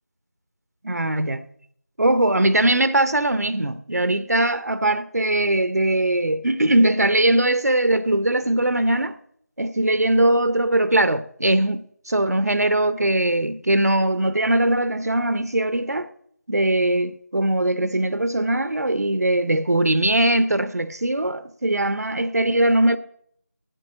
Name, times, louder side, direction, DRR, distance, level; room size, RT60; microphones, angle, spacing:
voice 1, 0.8-1.4 2.0-9.2 9.6-16.1 16.5-23.0, right 1 dB, 65° right, 0.8 m, -21 dB
9.2 x 8.3 x 8.3 m
figure-of-eight pair, 175°, 9 cm